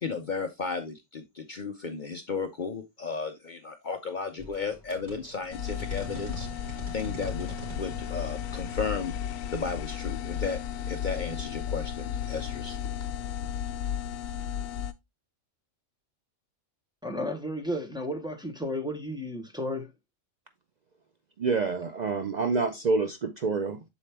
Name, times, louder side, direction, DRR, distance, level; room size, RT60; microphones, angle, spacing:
voice 1, 0.0-9.1 9.5-10.6 10.9-12.8, left 5 dB, 50° left, 0.6 m, -34 dB
sound 1, 4.4-10.8, equal, 35° right, 2.4 m, -44 dB
sound 2, 5.5-14.9, left 9 dB, 80° left, 1.0 m, -34 dB
voice 2, 17.0-19.9, left 1 dB, 5° right, 0.8 m, -33 dB
voice 3, 21.4-23.8, right 4 dB, 85° right, 0.3 m, -27 dB
7.1 x 4.2 x 3.3 m
omnidirectional pair, 1.4 m